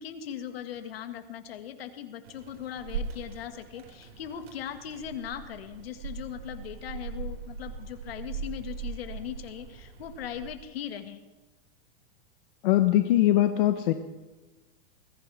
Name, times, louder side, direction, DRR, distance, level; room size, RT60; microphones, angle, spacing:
voice 1, 0.0-11.2, left 9 dB, 85° left, 8 dB, 2.0 m, -39 dB
sound 1, 2.2-10.5, right 5 dB, 90° right, 4.9 m, -40 dB
voice 2, 12.6-13.9, left 13 dB, 60° left, 8 dB, 1.0 m, -21 dB
21.5 x 15.5 x 3.5 m, 1.2 s
supercardioid pair, 160°, 29 cm